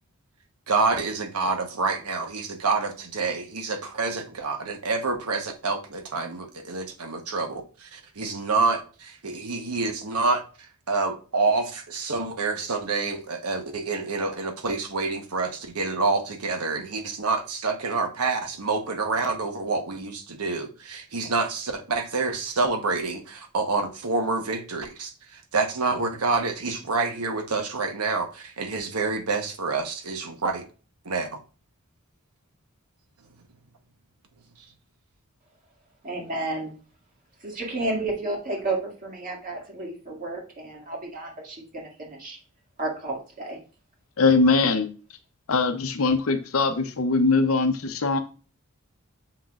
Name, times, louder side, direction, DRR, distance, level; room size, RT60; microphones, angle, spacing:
voice 1, 0.7-30.6 31.0-31.4, right 3 dB, 90° right, 1.1 m, -27 dB
voice 2, 36.0-36.8 37.4-42.4 42.8-43.6, right 2 dB, 35° right, 2.1 m, -32 dB
voice 3, 44.2-44.9 45.5-48.2, left 3 dB, 75° left, 0.7 m, -21 dB
7.0 x 5.9 x 2.4 m
head